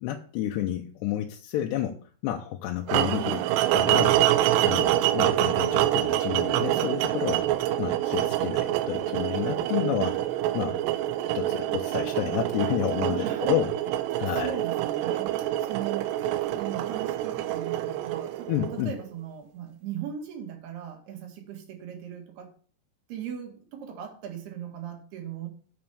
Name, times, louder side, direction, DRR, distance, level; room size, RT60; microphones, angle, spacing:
voice 1, 0.0-3.5 3.7-4.2 4.6-7.5 7.8-10.2 10.5-10.8 11.3-13.7 14.2-14.5 18.5-18.9, left 12 dB, 85° left, 2.9 m, -30 dB
sound 1, 2.9-19.0, right 13 dB, 90° right, 2.8 m, -26 dB
voice 2, 13.1-13.6 14.3-16.1 16.4-22.5 23.1-25.5, right 9 dB, 70° right, 3.8 m, -38 dB
8.0 x 5.2 x 7.0 m
omnidirectional pair, 4.9 m